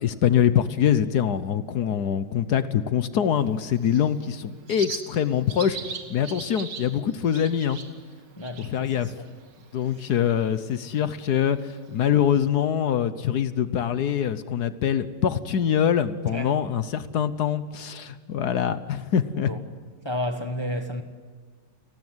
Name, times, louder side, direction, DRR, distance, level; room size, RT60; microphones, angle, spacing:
voice 1, 0.0-5.8 6.1-7.8 8.6-9.2 9.7-19.5, left 9 dB, 65° left, 1.4 m, -24 dB
Bird, 3.4-12.3, right 6 dB, 70° right, 2.3 m, -42 dB
voice 2, 8.4-9.3 10.0-10.1 16.3-16.6 19.3-19.6 20.0-21.0, left 1 dB, 15° left, 1.2 m, -32 dB
29.0 x 19.5 x 8.0 m
omnidirectional pair, 2.0 m